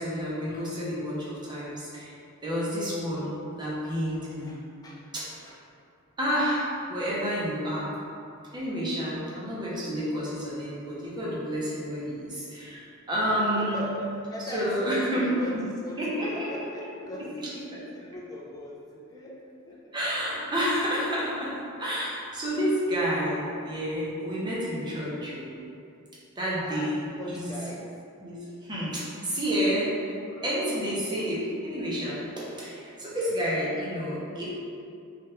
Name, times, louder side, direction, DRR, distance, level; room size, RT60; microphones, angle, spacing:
voice 1, 0.0-2.1 2.4-4.6 5.1-5.3 6.2-7.9 8.5-13.8 14.5-15.6 16.0-16.5 17.7-17.8 19.9-25.6 26.4-27.5 28.2-34.5, equal, 20° right, -7 dB, 0.7 m, -30 dB
voice 2, 4.0-5.1 5.4-5.6 13.6-19.9 26.6-27.9 33.1-33.2, equal, 15° left, -4 dB, 0.4 m, -39 dB
3.2 x 2.4 x 2.8 m, 2.5 s
head